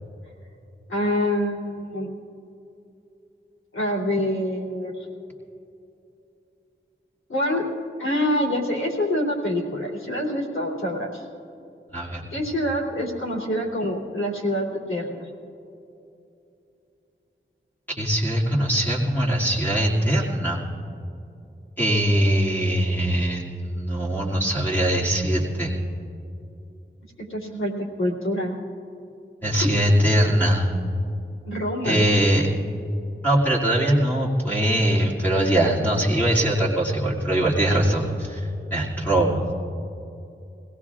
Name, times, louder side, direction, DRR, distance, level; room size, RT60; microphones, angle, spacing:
voice 1, 0.9-2.1 3.7-5.1 7.3-7.6 8.0-11.2 12.3-15.3 27.2-28.6 31.4-32.1, equal, 90° left, -4 dB, 3.1 m, -26 dB
voice 2, 18.0-20.6 21.8-25.7 29.4-30.7 31.8-32.5 33.2-39.4, right 1 dB, 10° left, -6 dB, 2.4 m, -22 dB
24.5 x 17.5 x 2.4 m, 2.8 s
wide cardioid pair, 60°, 20 cm